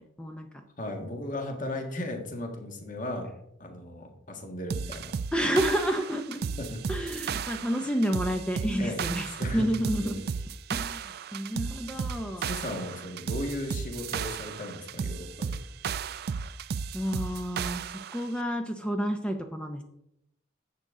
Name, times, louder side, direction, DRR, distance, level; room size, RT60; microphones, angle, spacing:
voice 1, 0.8-3.3 3.6-5.2 6.6-7.1 8.8-9.0 9.4-10.2 11.9-15.6, left 1 dB, 40° left, 3 dB, 1.6 m, -36 dB
sound 1, 4.7-18.3, right 6 dB, 50° right, 0.3 m, -34 dB
voice 2, 5.3-6.4 6.9-10.2 10.7-12.5 16.9-19.8, equal, 5° left, 5 dB, 0.6 m, -30 dB
10.5 x 8.0 x 3.7 m, 0.80 s
head